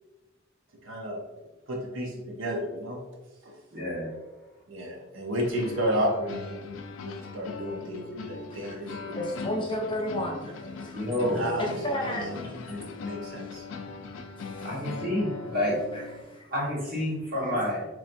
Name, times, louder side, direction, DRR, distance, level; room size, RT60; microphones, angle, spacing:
voice 1, 0.8-1.2 1.7-3.0 3.4-3.6 4.7-6.7 7.0-9.1 11.3-11.7 12.0-12.4 13.0-13.6, equal, 90° right, 0 dB, 0.8 m, -32 dB
voice 2, 3.7-4.1 10.9-11.5 12.7-12.8 14.6-15.8 16.5-17.9, left 1 dB, 50° right, -5 dB, 1.5 m, -29 dB
sound 1, 5.4-16.2, left 4 dB, 80° left, 0.4 m, -40 dB
voice 3, 8.5-11.0 11.6-12.5 13.4-13.5 14.4-14.7 15.9-16.5, left 1 dB, 25° left, -3 dB, 0.7 m, -34 dB
4.3 x 3.1 x 2.6 m, 1.1 s
head